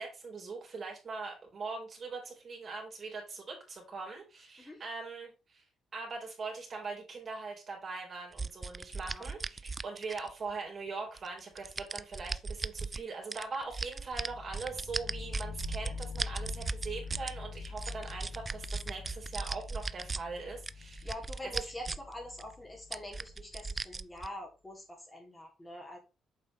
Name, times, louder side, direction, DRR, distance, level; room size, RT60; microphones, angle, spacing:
voice 1, 0.0-5.6 5.9-21.1 21.4-21.7, right 4 dB, 45° right, 0 dB, 3.7 m, -41 dB
sound 1, 8.4-10.5 11.2-13.0 13.3-17.3 17.6-20.2 20.6-22.1 22.4-22.5 22.9-24.3, right 4 dB, 30° right, 0.3 m, -37 dB
sound 2, 14.1-23.9, left 4 dB, 45° left, 2.4 m, -44 dB
voice 2, 21.0-26.0, left 1 dB, 15° left, -1 dB, 2.5 m, -45 dB
7.5 x 5.4 x 3.1 m, 0.29 s
cardioid pair, 90°, 0 cm